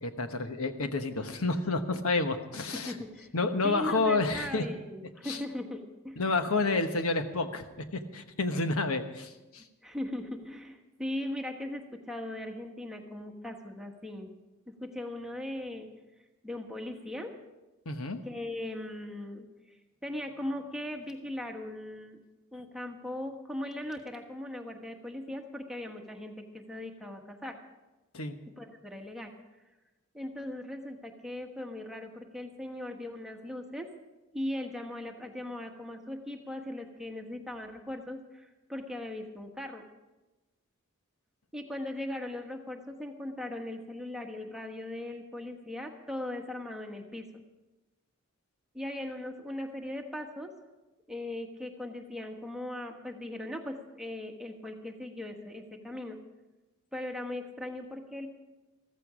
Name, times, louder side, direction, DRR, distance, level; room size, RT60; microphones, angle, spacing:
voice 1, 0.0-2.9 3.3-4.6 5.2-5.4 6.2-9.6 17.8-18.2 28.1-28.3, left 3 dB, 85° left, 7 dB, 1.1 m, -30 dB
voice 2, 2.9-3.3 3.6-5.8 6.0-6.2 9.8-14.3 14.7-15.9 16.4-17.3 18.2-19.5 20.0-22.2 22.5-27.6 28.6-29.3 30.1-33.9 34.3-39.8 41.5-47.2 48.7-50.5 51.1-56.2 56.9-58.3, left 1 dB, ahead, 2 dB, 1.3 m, -39 dB
14.5 x 14.5 x 5.0 m, 1.1 s
head